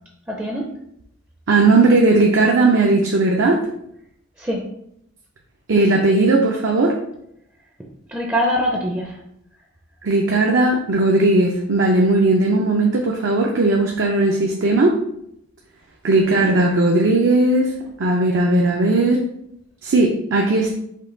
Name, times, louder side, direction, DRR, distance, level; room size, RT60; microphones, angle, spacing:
voice 1, 0.3-0.7 4.4-4.6 8.1-9.2 16.2-16.5, equal, 10° right, -1 dB, 0.5 m, -23 dB
voice 2, 1.5-3.6 5.7-7.0 10.0-14.9 16.0-17.7 18.0-19.2 19.8-20.7, right 2 dB, 60° right, 0 dB, 0.6 m, -17 dB
5.4 x 2.3 x 3.8 m, 0.74 s
head